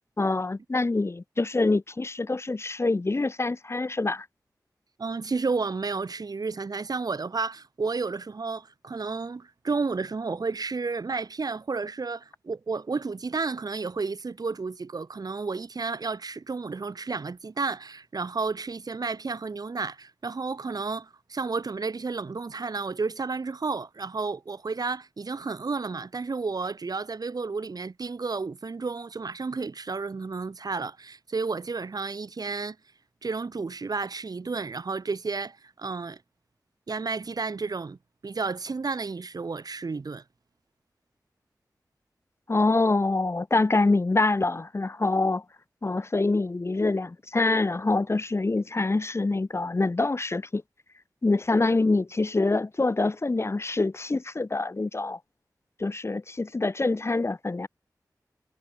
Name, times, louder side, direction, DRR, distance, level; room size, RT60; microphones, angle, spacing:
voice 1, 0.2-4.3 42.5-45.4 45.8-50.6 51.2-55.2 55.8-57.7, left 3 dB, 40° left, 0.9 m, -25 dB
voice 2, 5.0-32.8 33.2-36.2 36.9-38.0 38.2-40.2, right 4 dB, 60° right, 2.0 m, -32 dB
cardioid pair, 50°, 7 cm